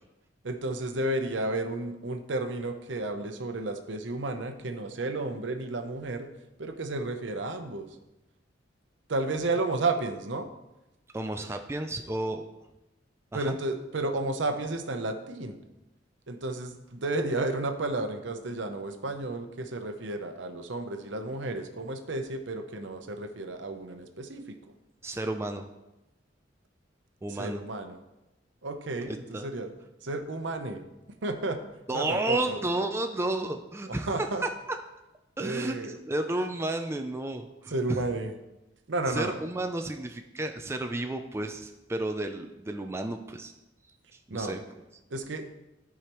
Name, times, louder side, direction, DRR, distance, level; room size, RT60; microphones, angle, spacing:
voice 1, 0.4-6.3 6.6-7.9 9.1-10.5 13.3-15.6 16.3-24.6 27.4-28.0 28.6-29.7 30.0-30.8 31.2-31.6 31.9-32.6 33.9-34.4 35.4-36.0 37.7-38.3 38.9-39.4 44.3-44.6 45.1-45.4, right 2 dB, 70° right, 7 dB, 0.8 m, -32 dB
voice 2, 11.1-12.4 13.3-13.6 25.0-25.7 27.2-27.6 29.1-29.5 31.9-34.5 35.4-35.8 36.1-38.1 39.1-43.5 44.3-44.6, right 2 dB, 15° right, 5 dB, 0.4 m, -32 dB
13.0 x 4.9 x 3.0 m, 0.97 s
head